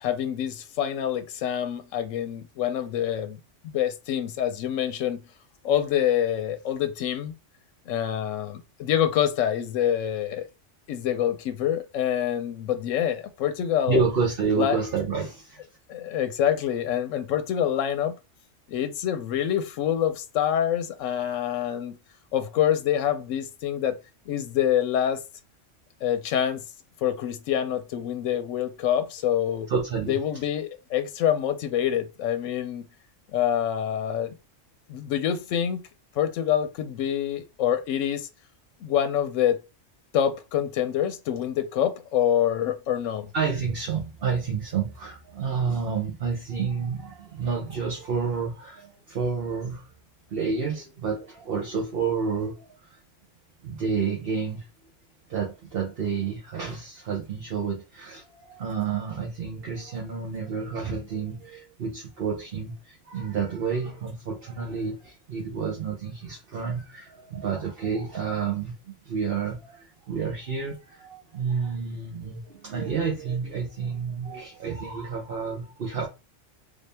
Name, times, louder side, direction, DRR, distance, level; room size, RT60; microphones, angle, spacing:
voice 1, 0.0-5.2 5.6-7.3 7.9-10.5 10.9-14.0 14.6-14.8 15.9-18.2 18.7-22.0 22.3-24.0 24.3-25.2 26.0-26.6 27.0-29.7 30.1-32.9 33.3-34.3 34.9-35.8 36.2-38.3 38.8-39.6 40.1-43.3, left 10 dB, 85° left, 0.9 m, -26 dB
voice 2, 13.9-15.6 29.7-30.2 43.3-49.9 50.3-53.0 53.6-54.6 55.3-76.1, right 5 dB, 55° right, 1.0 m, -29 dB
3.6 x 2.7 x 3.3 m
omnidirectional pair, 1.3 m